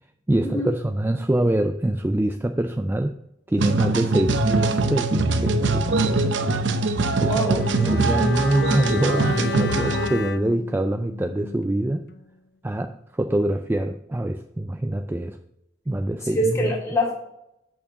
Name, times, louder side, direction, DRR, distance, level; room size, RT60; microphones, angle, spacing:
voice 1, 0.3-3.2 3.5-6.3 7.2-12.0 12.6-15.4 15.9-16.7, right 1 dB, 10° right, 7 dB, 0.3 m, -24 dB
sound 1, 3.6-10.1, right 3 dB, 90° right, 0.7 m, -23 dB
voice 2, 7.2-7.6 16.3-17.1, left 1 dB, 15° left, -3 dB, 2.7 m, -24 dB
Bowed string instrument, 7.4-11.8 12.1-12.2, left 5 dB, 60° left, 0.4 m, -32 dB
8.4 x 4.4 x 7.0 m, 0.82 s
head